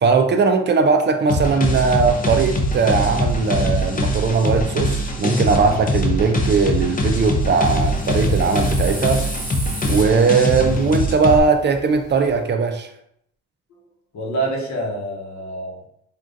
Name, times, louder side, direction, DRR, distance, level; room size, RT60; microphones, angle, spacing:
voice 1, 0.0-9.2 9.8-12.9, right 4 dB, 35° right, 6 dB, 0.4 m, -19 dB
sound 1, 1.3-11.4, left 1 dB, 30° left, 0.5 m, -22 dB
sound 2, 7.4-12.4, right 1 dB, 15° right, 0.9 m, -37 dB
voice 2, 14.1-15.9, right 2 dB, 65° left, -2 dB, 1.1 m, -27 dB
3.5 x 2.4 x 2.6 m, 0.73 s
cardioid pair, 90°, 30 cm